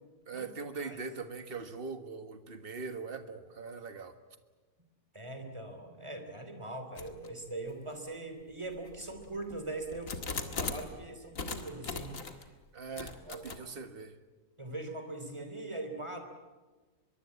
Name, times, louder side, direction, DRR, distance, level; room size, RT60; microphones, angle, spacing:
voice 1, 0.3-4.2 12.7-14.2, right 4 dB, 35° right, 9 dB, 1.7 m, -41 dB
voice 2, 5.1-12.4 13.3-13.4 14.6-16.2, right 2 dB, 15° right, 7 dB, 3.4 m, -41 dB
sound 1, 7.0-7.3 7.9-8.0 8.7-10.9 11.3-12.4 13.0-13.6, left 4 dB, 55° left, 2.3 m, -39 dB
23.5 x 23.0 x 8.5 m, 1.3 s
omnidirectional pair, 1.7 m